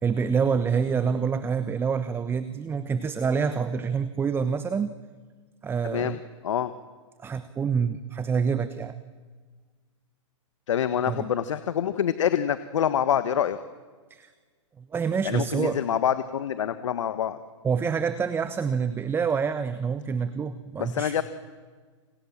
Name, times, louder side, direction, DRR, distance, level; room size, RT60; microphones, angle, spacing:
voice 1, 0.0-4.9 5.6-6.2 7.2-8.9 11.1-11.3 14.1-14.3 14.8-15.8 17.6-21.2, right 6 dB, 15° right, 12 dB, 1.1 m, -27 dB
voice 2, 5.8-6.7 10.7-13.6 15.2-17.4 20.8-21.2, left 9 dB, 75° left, 12 dB, 1.5 m, -26 dB
28.5 x 26.0 x 7.3 m, 1.5 s
hypercardioid pair, 130°, 16 cm